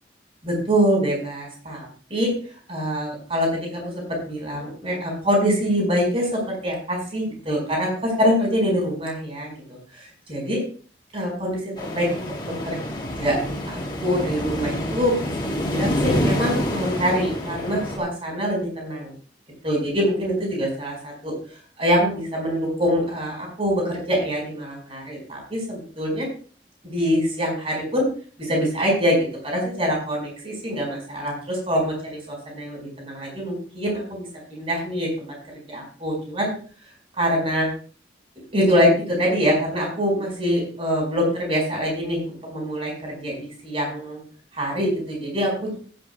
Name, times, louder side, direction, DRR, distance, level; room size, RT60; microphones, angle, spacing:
voice 1, 0.4-2.3 2.7-9.5 9.9-10.6 11.1-12.8 13.2-13.4 13.7-19.1 19.6-21.3 21.8-26.3 26.8-28.0 28.4-29.2 29.4-35.3 35.7-36.5 37.2-37.7 38.5-44.2 44.5-45.8, equal, 35° right, 0 dB, 4.9 m, -24 dB
sound 1, 11.8-18.0, left 1 dB, 25° left, 2.8 m, -27 dB
15.0 x 11.5 x 2.3 m, 0.41 s
head